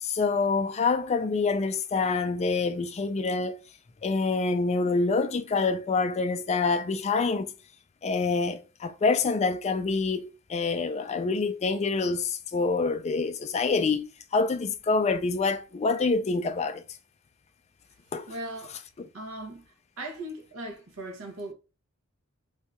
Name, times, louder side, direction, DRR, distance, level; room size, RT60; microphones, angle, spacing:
voice 1, 0.0-3.6 4.0-7.5 8.0-14.0 14.3-16.8 18.1-18.3 19.0-19.1, left 4 dB, 30° left, 0.3 m, -26 dB
voice 2, 18.3-18.8 19.1-19.6 20.0-21.5, right 1 dB, 70° right, 0.8 m, -38 dB
2.7 x 2.3 x 4.1 m
head